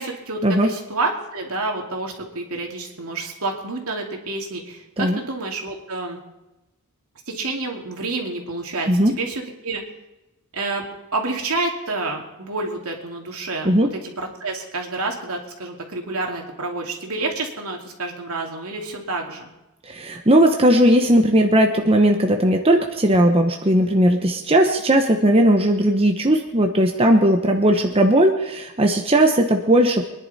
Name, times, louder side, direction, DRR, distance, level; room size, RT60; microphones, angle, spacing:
voice 1, 0.0-6.2 7.3-9.8 10.5-10.8 11.1-19.5, right 3 dB, 75° right, 1 dB, 2.6 m, -29 dB
voice 2, 19.9-30.0, right 1 dB, 25° right, 4 dB, 1.0 m, -17 dB
23.5 x 10.5 x 4.2 m, 1.0 s
head